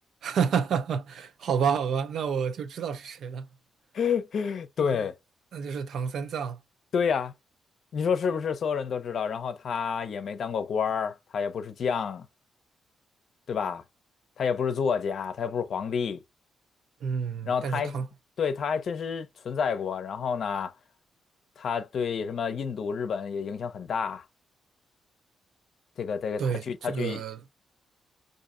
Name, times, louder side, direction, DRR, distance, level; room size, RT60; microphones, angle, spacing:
voice 1, 0.2-3.5 4.8-5.0 5.5-6.6 17.0-18.1 26.4-27.4, right 6 dB, 75° right, 0.5 m, -29 dB
voice 2, 3.9-5.1 6.9-7.3 7.9-12.3 13.5-13.8 14.4-16.2 17.4-18.0 18.4-20.7 21.6-24.2 26.0-27.2, left 6 dB, 65° left, 0.6 m, -29 dB
4.8 x 2.6 x 2.5 m
cardioid pair, 85°, 0 cm